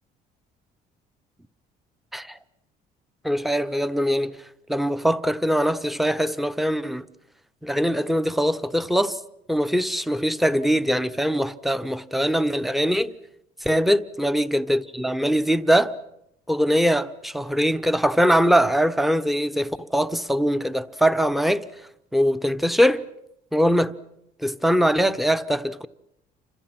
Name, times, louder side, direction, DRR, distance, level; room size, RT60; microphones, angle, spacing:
voice 1, 3.2-4.4 4.7-7.0 7.6-9.2 9.5-13.1 13.6-15.9 16.5-21.7 22.1-23.0 23.5-23.9 24.4-25.9, equal, ahead, 1.0 m, -22 dB
30.0 x 26.5 x 6.1 m
cardioid pair, 110°, 17 cm